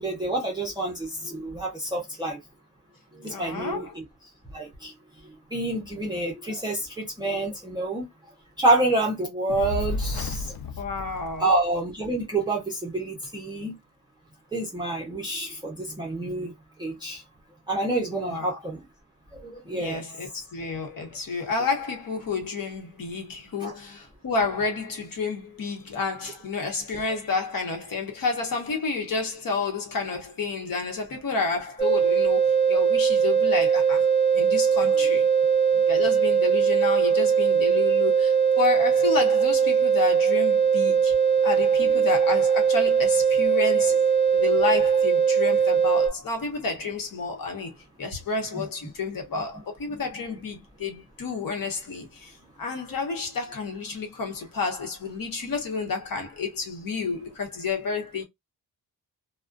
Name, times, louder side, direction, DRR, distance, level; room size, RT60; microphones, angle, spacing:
voice 1, 0.0-2.4 3.1-4.0 4.5-4.9 5.2-8.1 8.6-10.5 11.4-13.8 14.5-16.5 16.8-17.2 17.7-18.8 19.3-20.0 23.6-23.7 48.5-48.7 49.9-50.0, right 2 dB, 10° right, 0.6 m, -28 dB
voice 2, 3.3-3.9 10.8-11.5 18.1-18.6 19.7-34.1 34.3-35.3 35.9-41.1 41.4-44.0 44.3-47.7 48.0-58.2, left 4 dB, 60° left, 1.0 m, -30 dB
Fire, 9.5-11.9, left 3 dB, 75° left, 0.5 m, -32 dB
sound 1, 31.8-46.1, right 6 dB, 15° left, 1.3 m, -21 dB
2.4 x 2.1 x 2.4 m
wide cardioid pair, 155°, 38 cm